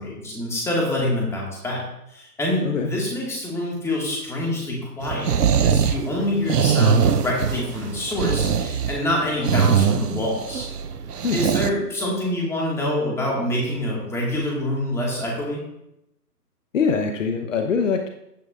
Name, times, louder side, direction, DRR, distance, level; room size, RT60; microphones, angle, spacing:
voice 1, 0.0-10.7 11.3-15.6, left 1 dB, 5° left, -3 dB, 2.0 m, -26 dB
sound 1, 5.0-11.7, right 7 dB, 70° right, 0.9 m, -22 dB
voice 2, 16.7-18.1, left 5 dB, 50° left, 5 dB, 1.1 m, -23 dB
15.0 x 9.7 x 2.6 m, 0.82 s
figure-of-eight pair, 145°, 49 cm